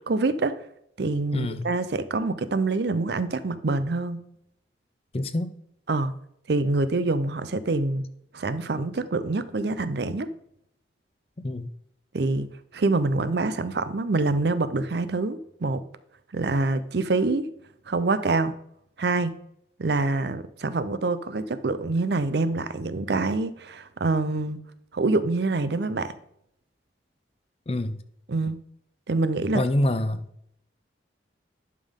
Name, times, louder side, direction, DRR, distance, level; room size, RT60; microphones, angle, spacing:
voice 1, 0.1-0.6 1.0-4.2 5.9-6.1 6.5-8.0 8.3-10.3 12.1-15.8 16.3-17.5 17.9-18.5 19.0-19.3 19.8-24.6 24.9-26.1 28.3-28.6 29.1-29.6, right 3 dB, 60° right, 13 dB, 0.6 m, -26 dB
voice 2, 1.3-1.6 5.1-5.5 11.4-11.7 27.7-28.0 29.5-30.3, left 1 dB, 30° left, 12 dB, 0.5 m, -26 dB
11.0 x 5.4 x 3.6 m, 0.73 s
head